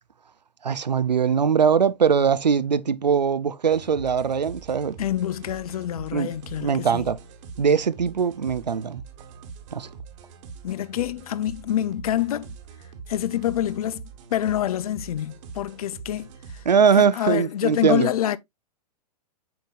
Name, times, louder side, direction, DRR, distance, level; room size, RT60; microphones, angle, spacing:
voice 1, 0.6-5.0 6.1-6.3 6.6-7.2 7.6-9.0 9.7-9.9 16.7-18.1, right 6 dB, 85° right, 0.5 m, -21 dB
sound 1, 3.7-16.7, right 5 dB, 45° right, 1.4 m, -43 dB
voice 2, 5.0-7.1 10.6-12.6 13.1-14.0 14.3-16.6 17.0-18.4, left 12 dB, 60° left, 0.5 m, -27 dB
7.7 x 5.2 x 2.4 m
figure-of-eight pair, 105°, 21 cm